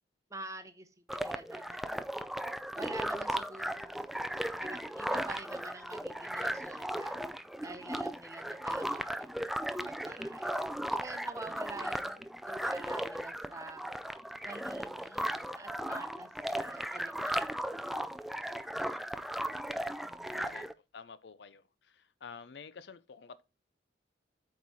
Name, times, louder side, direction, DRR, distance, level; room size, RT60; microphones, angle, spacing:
voice 1, 0.3-0.9 1.2-2.0 2.7-4.1 4.6-9.5 9.9-13.8 14.4-17.6 20.1-20.5, right 2 dB, 15° right, 0.8 m, -48 dB
sound 1, 1.1-20.7, equal, ahead, 0.3 m, -36 dB
voice 2, 18.7-19.2 20.3-20.7 20.9-23.4, left 5 dB, 65° left, 0.5 m, -50 dB
8.3 x 4.7 x 4.1 m
head